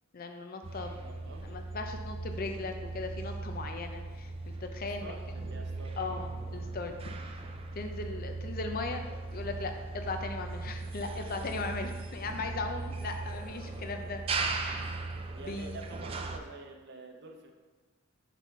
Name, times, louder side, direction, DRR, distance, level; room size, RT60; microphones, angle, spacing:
voice 1, 0.1-1.0 1.3-5.1 5.5-5.6 6.0-7.1 7.7-9.1 9.3-14.9 15.4-15.8, left 3 dB, 45° left, 5 dB, 0.5 m, -38 dB
sound 1, 0.6-16.4, right 3 dB, 30° right, 0.4 m, -38 dB
voice 2, 1.0-1.5 5.0-6.2 8.7-8.8 15.3-17.5, right 3 dB, 55° right, 2 dB, 0.7 m, -47 dB
4.5 x 4.2 x 5.4 m, 1.4 s
head